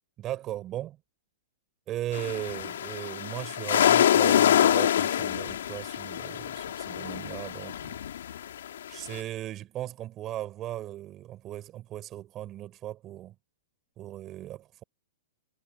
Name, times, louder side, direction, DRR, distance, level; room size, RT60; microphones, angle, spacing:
voice 1, 0.2-1.0 1.9-8.0 8.9-13.3 14.0-14.8, right 13 dB, 30° right, 5.7 m, -37 dB
sound 1, 2.1-9.2, left 10 dB, 75° left, 2.5 m, -25 dB
hypercardioid pair, 140°, 0 cm